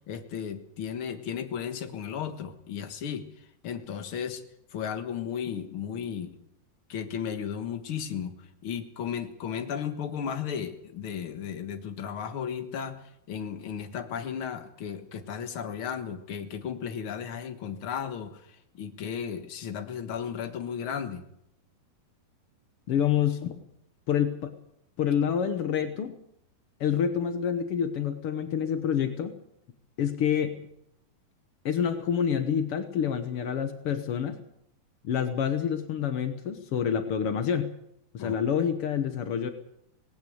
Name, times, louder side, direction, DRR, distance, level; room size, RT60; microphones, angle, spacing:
voice 1, 0.1-3.3 3.6-4.4 4.7-6.4 6.9-13.0 13.3-18.4 18.7-21.2 38.2-38.3, left 8 dB, 65° left, 8 dB, 1.3 m, -34 dB
voice 2, 22.9-23.6 24.1-24.5 25.0-26.2 26.8-29.3 30.0-30.6 31.6-34.4 35.0-37.7 38.1-39.5, left 8 dB, 85° left, 9 dB, 1.2 m, -27 dB
19.0 x 17.5 x 8.1 m, 0.76 s
omnidirectional pair, 4.5 m